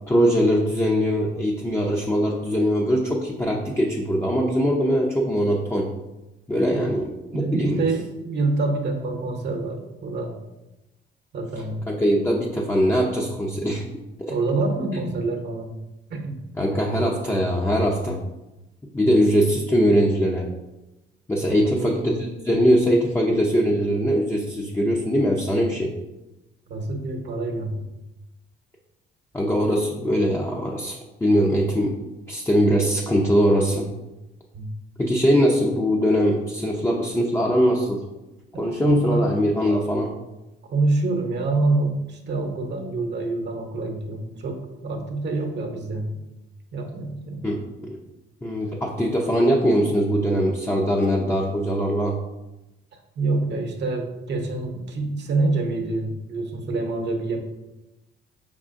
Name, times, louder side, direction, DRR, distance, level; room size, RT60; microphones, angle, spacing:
voice 1, 0.1-5.9 6.5-7.8 11.9-13.8 14.9-15.0 16.6-18.2 18.9-20.5 21.3-25.9 29.3-32.0 32.3-33.9 35.0-38.0 38.6-40.1 47.4-48.0 48.4-52.2, equal, 10° left, -2 dB, 0.5 m, -21 dB
voice 2, 7.3-10.4 11.3-11.8 14.3-15.7 16.1-16.4 21.5-21.9 26.7-27.8 34.5-34.7 38.5-39.3 40.7-46.2 46.7-47.5 52.9-57.4, right 3 dB, 60° right, 2 dB, 0.8 m, -26 dB
4.8 x 3.6 x 2.5 m, 1.0 s
cardioid pair, 90°, 20 cm